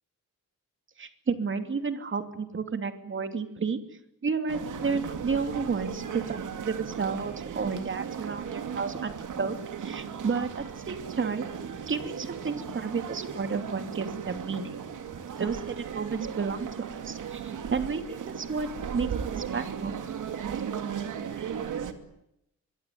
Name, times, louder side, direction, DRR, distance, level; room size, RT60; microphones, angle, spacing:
voice 1, 1.0-3.8 4.2-11.5 11.9-14.8 15.4-16.7 17.0-19.9, right 5 dB, 40° right, 8 dB, 3.0 m, -32 dB
sound 1, 4.5-21.9, right 7 dB, 75° right, 2.8 m, -36 dB
25.0 x 23.5 x 9.5 m, 0.81 s
wide cardioid pair, 140°, 31 cm